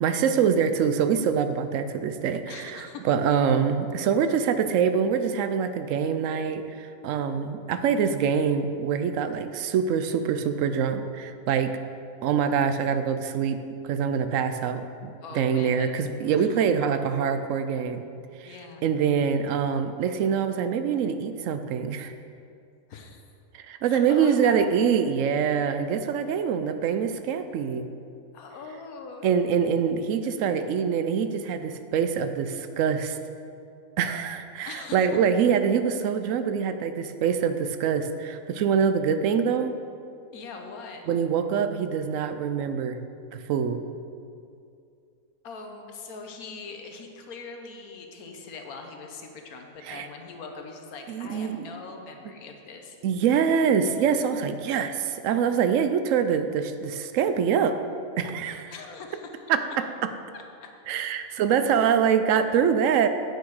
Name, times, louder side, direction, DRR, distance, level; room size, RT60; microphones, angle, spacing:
voice 1, 0.0-11.8 12.2-18.0 18.4-18.5 18.8-22.1 23.7-27.9 29.2-33.2 34.0-39.7 41.1-43.0 43.3-43.8 49.9-50.1 51.1-51.7 53.0-57.8 58.2-58.7 59.5-59.6 60.9-63.1, right 7 dB, 70° right, 9 dB, 0.9 m, -25 dB
voice 2, 2.5-3.1 15.2-15.9 16.2-16.7 18.4-18.8 22.9-23.2 23.8-24.8 28.3-29.3 34.6-35.2 40.3-41.0 45.4-53.0 58.7-59.4 60.3-60.7, left 4 dB, 90° left, 4 dB, 1.3 m, -42 dB
8.5 x 6.5 x 4.8 m, 2.5 s
omnidirectional pair, 1.5 m